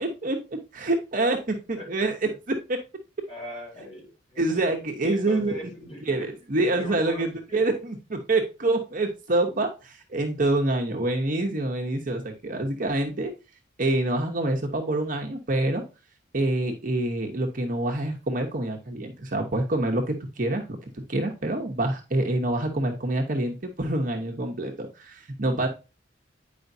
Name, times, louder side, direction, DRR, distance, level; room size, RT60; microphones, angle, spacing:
voice 1, 0.0-2.3 2.7-2.8 3.2-3.3 4.4-5.5 6.1-13.3 13.8-15.8 16.3-25.7, right 2 dB, 45° right, 2 dB, 0.9 m, -26 dB
voice 2, 1.8-2.3 3.3-4.7 5.0-6.3 6.7-7.6, left 1 dB, 25° left, -3 dB, 3.6 m, -41 dB
9.2 x 5.0 x 2.7 m, 0.29 s
head